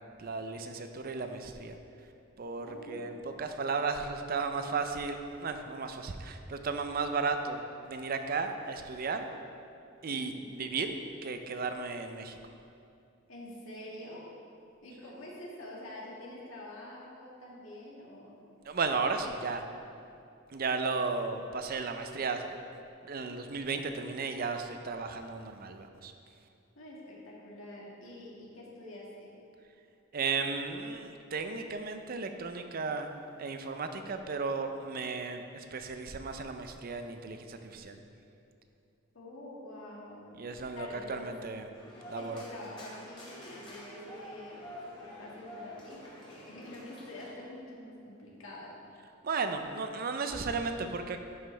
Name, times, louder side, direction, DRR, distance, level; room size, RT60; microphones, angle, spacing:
voice 1, 0.2-1.8 2.4-9.3 10.0-10.9 11.2-12.4 18.7-19.6 20.5-22.5 23.1-26.1 30.1-33.1 33.4-38.0 40.4-41.7 42.1-42.4 49.2-51.2, right 4 dB, 45° right, 7 dB, 0.5 m, -34 dB
voice 2, 2.6-3.2 10.1-10.5 13.3-14.3 14.8-18.4 26.8-29.3 39.1-40.4 40.7-41.3 42.1-48.7, left 1 dB, 85° left, -5 dB, 1.8 m, -46 dB
sound 1, 41.7-47.3, left 1 dB, 25° left, 2.0 m, -48 dB
11.0 x 5.5 x 3.3 m, 2.6 s
head